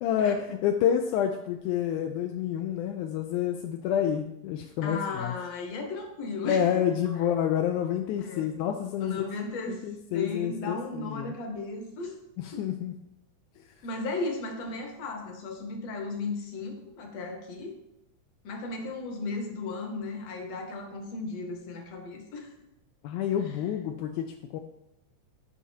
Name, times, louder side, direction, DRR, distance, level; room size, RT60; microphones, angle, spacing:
voice 1, 0.0-5.3 6.5-9.3 9.7-11.3 12.4-12.9 13.6-13.7 23.0-24.6, left 9 dB, 85° left, 4 dB, 2.0 m, -28 dB
voice 2, 4.8-6.8 7.1-7.3 8.2-8.5 9.0-9.8 10.1-12.2 12.5-12.6 13.8-17.7 18.4-22.5, left 3 dB, 60° left, 2 dB, 2.3 m, -35 dB
15.5 x 5.6 x 2.8 m, 0.88 s
omnidirectional pair, 3.5 m